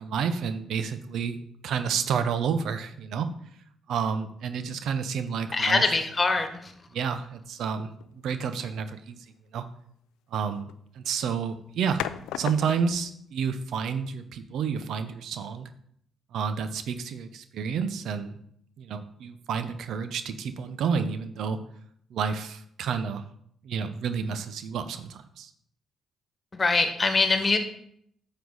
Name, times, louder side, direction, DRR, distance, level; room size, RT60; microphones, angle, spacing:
voice 1, 0.0-1.4 1.6-3.3 3.9-5.8 6.9-9.2 9.5-9.7 10.3-12.1 12.4-15.7 16.3-18.4 18.8-21.6 22.1-23.2 23.6-25.5, right 6 dB, 75° right, 11 dB, 0.7 m, -30 dB
voice 2, 5.5-6.7 26.5-27.6, left 3 dB, 35° left, 7 dB, 1.5 m, -23 dB
sound 1, 8.0-8.3 10.5-10.8 12.0-13.1, left 12 dB, 85° left, 0.4 m, -36 dB
9.4 x 6.7 x 4.0 m, 0.68 s
supercardioid pair, 55°, 0 cm